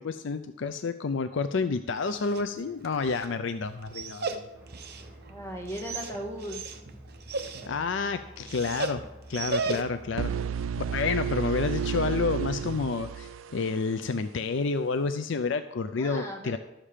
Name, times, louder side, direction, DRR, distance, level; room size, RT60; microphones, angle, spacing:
voice 1, 0.0-4.4 7.7-9.0 9.3-10.3 10.9-16.6, left 4 dB, 65° left, 10 dB, 0.5 m, -29 dB
Dog, 1.9-10.2, right 3 dB, 55° right, 0.9 m, -37 dB
sound 1, 4.5-11.2, right 1 dB, 10° right, 1.5 m, -50 dB
voice 2, 5.3-6.6 16.0-16.6, equal, 15° left, 0 dB, 1.7 m, -37 dB
sound 2, 10.2-14.0, right 7 dB, 80° right, 0.4 m, -31 dB
12.5 x 7.3 x 5.0 m, 0.91 s
head